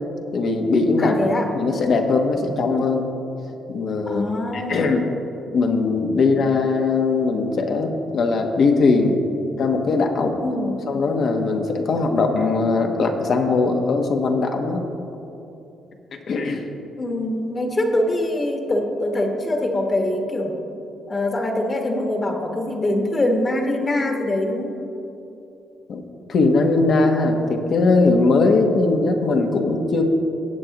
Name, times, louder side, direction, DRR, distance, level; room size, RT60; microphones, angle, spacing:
voice 1, 0.3-1.2 1.5-3.1 3.7-4.2 4.5-5.0 5.5-9.2 9.6-10.4 10.9-14.8 16.1-16.6 25.9-26.0 26.3-30.0, left 3 dB, 60° left, 3 dB, 1.1 m, -20 dB
voice 2, 1.0-1.5 4.1-4.9 10.4-10.7 17.0-20.5 21.1-24.7, left 1 dB, 30° left, 2 dB, 1.4 m, -23 dB
17.5 x 7.7 x 2.9 m, 2.9 s
cardioid pair, 90°, 0 cm